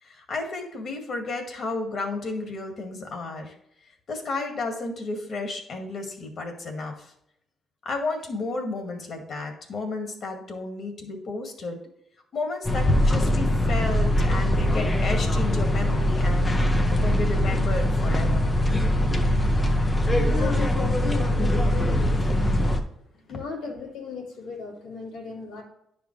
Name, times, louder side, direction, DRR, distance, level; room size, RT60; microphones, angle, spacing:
voice 1, 0.0-3.5 4.1-7.1 7.8-11.8 12.3-18.6 23.3-23.4, left 3 dB, 55° left, 3 dB, 2.1 m, -32 dB
sound 1, 12.6-22.8, left 1 dB, 25° left, 1.0 m, -22 dB
voice 2, 20.1-22.6 23.3-25.6, left 4 dB, 90° left, -3 dB, 3.1 m, -36 dB
9.9 x 5.3 x 3.3 m, 0.76 s
cardioid pair, 90°, 0 cm